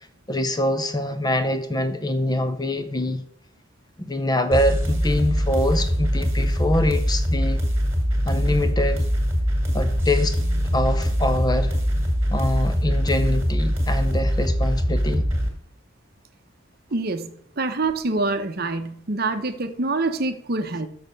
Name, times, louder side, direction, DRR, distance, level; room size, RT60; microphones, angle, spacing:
voice 1, 0.3-3.2 4.0-7.6 8.2-9.1 9.7-10.4 10.7-11.8 12.3-15.2, left 1 dB, 20° left, 9 dB, 0.6 m, -24 dB
sound 1, 4.5-15.5, equal, 10° right, 1.9 m, -22 dB
voice 2, 16.9-20.9, right 3 dB, 45° right, 8 dB, 0.8 m, -26 dB
6.6 x 6.5 x 5.1 m, 0.66 s
head